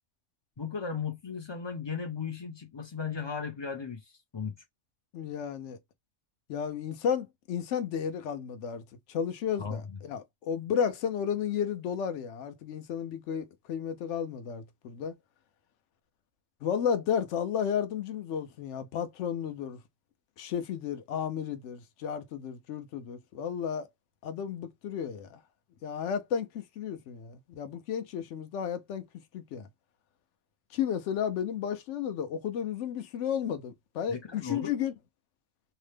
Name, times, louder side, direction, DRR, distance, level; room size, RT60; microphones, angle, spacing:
voice 1, 0.6-4.0 4.3-4.5 9.6-9.8 34.1-34.7, left 6 dB, 40° left, 0.3 m, -36 dB
voice 2, 5.1-5.8 6.5-8.8 9.1-15.1 16.6-19.8 20.4-23.9 24.2-25.4 25.8-29.1 29.3-29.7 30.7-34.9, left 8 dB, 75° left, 0.9 m, -33 dB
2.9 x 2.1 x 3.2 m
omnidirectional pair, 1.3 m